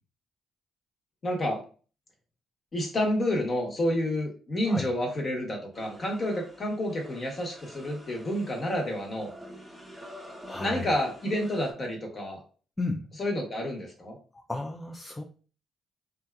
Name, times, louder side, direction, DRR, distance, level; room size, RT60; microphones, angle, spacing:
voice 1, 1.2-1.6 2.7-9.3 10.6-12.4 13.2-14.2, left 1 dB, 40° left, 1 dB, 0.9 m, -29 dB
sound 1, 5.7-11.7, equal, ahead, 0.8 m, -48 dB
voice 2, 10.5-10.9 12.8-13.0 14.3-15.2, left 2 dB, 20° left, 2 dB, 0.3 m, -33 dB
2.6 x 2.3 x 2.2 m, 0.38 s
cardioid pair, 90°, 0 cm